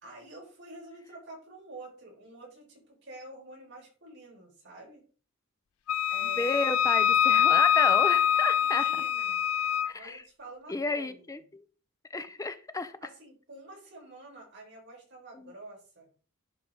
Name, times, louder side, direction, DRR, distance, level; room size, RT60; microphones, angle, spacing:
voice 1, 0.0-5.0 6.1-6.6 8.6-9.4 9.9-11.4 13.0-16.1, right 2 dB, 60° right, -2 dB, 5.0 m, -48 dB
Wind instrument woodwind instrument, 5.9-9.9, left 9 dB, 90° left, 0.4 m, -24 dB
voice 2, 6.2-8.9 9.8-10.2 10.7-11.6 12.1-13.0 15.3-15.5, left 3 dB, 15° left, 11 dB, 0.6 m, -32 dB
11.0 x 4.8 x 3.9 m, 0.39 s
head